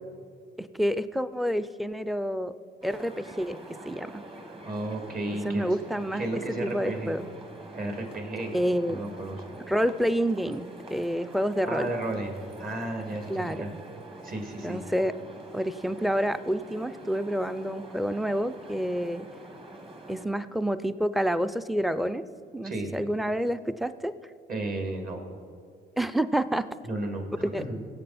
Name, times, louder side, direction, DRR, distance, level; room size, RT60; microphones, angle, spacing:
voice 1, 0.6-2.5 2.8-3.6 3.9-4.2 5.4-7.3 8.5-9.0 9.7-11.9 13.3-13.7 14.6-15.1 15.5-19.3 20.1-22.3 22.5-24.1 26.0-26.7 27.4-27.6, equal, ahead, 13 dB, 0.4 m, -28 dB
sound 1, 2.8-20.3, right 2 dB, 25° right, 1.6 m, -46 dB
voice 2, 4.6-5.6 6.1-7.1 7.7-8.6 8.9-9.4 11.6-13.7 14.2-14.8 22.6-22.9 24.5-25.2 26.8-27.8, right 2 dB, 45° right, 3 dB, 2.5 m, -33 dB
17.5 x 7.7 x 4.3 m, 2.3 s
cardioid pair, 90°, 20 cm